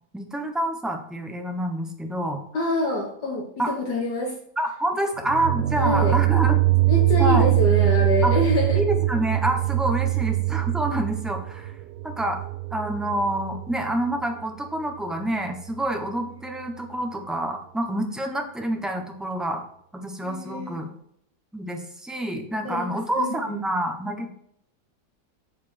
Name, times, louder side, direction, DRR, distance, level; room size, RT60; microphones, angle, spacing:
voice 1, 0.1-2.4 3.6-3.7 4.6-6.6 7.2-7.5 8.2-8.3 8.7-11.7 12.0-12.4 12.7-19.6 19.9-20.9 21.5-24.3, right 1 dB, ahead, 3 dB, 0.9 m, -27 dB
voice 2, 2.5-4.4 5.8-6.2 6.9-8.8 10.1-10.2 20.2-20.8 22.6-23.6, left 2 dB, 70° left, -2 dB, 2.0 m, -26 dB
sound 1, 5.2-14.1, right 18 dB, 75° right, 1.2 m, -23 dB
8.4 x 7.1 x 4.4 m, 0.71 s
omnidirectional pair, 1.9 m